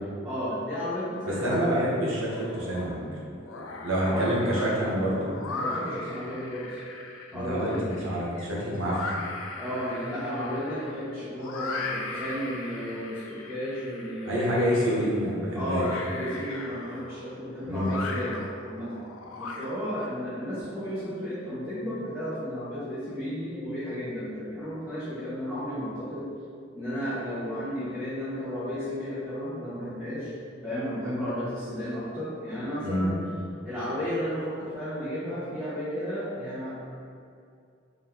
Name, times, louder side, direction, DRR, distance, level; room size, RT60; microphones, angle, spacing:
voice 1, 0.2-1.6 3.5-4.3 5.0-5.2 5.5-6.8 7.3-7.8 9.6-14.5 15.5-19.0 19.4-26.3 26.7-30.3 30.6-33.2 33.6-36.8, equal, 5° right, -14 dB, 0.8 m, -33 dB
voice 2, 1.3-3.0 3.8-5.3 7.3-9.0 14.2-15.9 17.6-17.9 32.8-33.2, equal, 85° right, -5 dB, 1.0 m, -27 dB
sound 1, 2.3-3.0 3.3-20.1, left 3 dB, 90° left, 0.4 m, -39 dB
4.4 x 2.5 x 3.6 m, 2.4 s
head